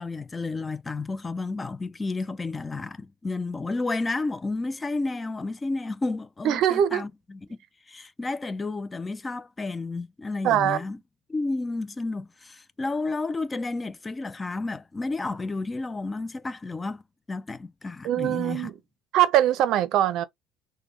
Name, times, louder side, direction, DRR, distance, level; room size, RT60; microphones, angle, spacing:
voice 1, 0.0-7.6 7.9-11.0 11.3-17.0 17.3-18.7, left 3 dB, 20° left, 0.3 m, -31 dB
voice 2, 6.4-7.0 10.4-10.8 18.0-18.7 19.1-20.2, right 11 dB, 65° right, 0.5 m, -22 dB
3.3 x 2.1 x 3.2 m
cardioid pair, 115°, 0 cm